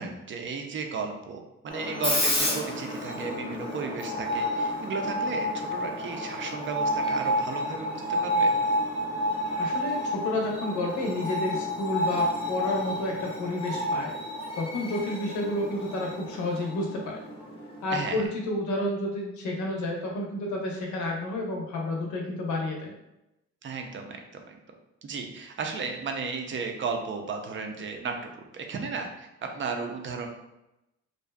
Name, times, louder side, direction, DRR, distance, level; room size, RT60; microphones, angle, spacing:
voice 1, 0.0-8.5 17.9-18.2 23.6-24.6 25.0-30.3, right 4 dB, 40° right, 3 dB, 0.5 m, -34 dB
Screech, 1.7-18.3, left 1 dB, 20° left, 0.6 m, -30 dB
voice 2, 9.6-14.1 14.6-17.2 17.8-22.9, left 1 dB, 75° left, 0 dB, 0.7 m, -30 dB
2.6 x 2.2 x 2.2 m, 0.90 s
cardioid pair, 90°, 30 cm